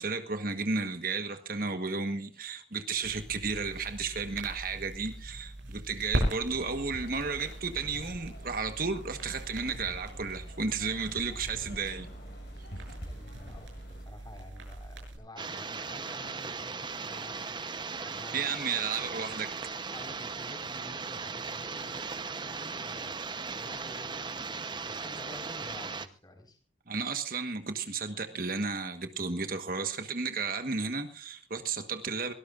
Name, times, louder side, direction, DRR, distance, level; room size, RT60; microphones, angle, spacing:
voice 1, 0.0-12.1 18.3-19.6 26.9-32.3, right 4 dB, 50° right, 8 dB, 1.3 m, -33 dB
sound 1, 3.0-15.2, equal, 85° right, 7.1 m, -39 dB
sound 2, 6.5-14.0, equal, 55° left, 6.2 m, -48 dB
voice 2, 13.0-17.6 18.0-18.5 19.7-26.6, left 1 dB, 20° left, 4 dB, 4.5 m, -50 dB
sound 3, 15.4-26.1, right 4 dB, 25° right, 0.8 m, -38 dB
23.0 x 18.5 x 2.5 m, 0.35 s
head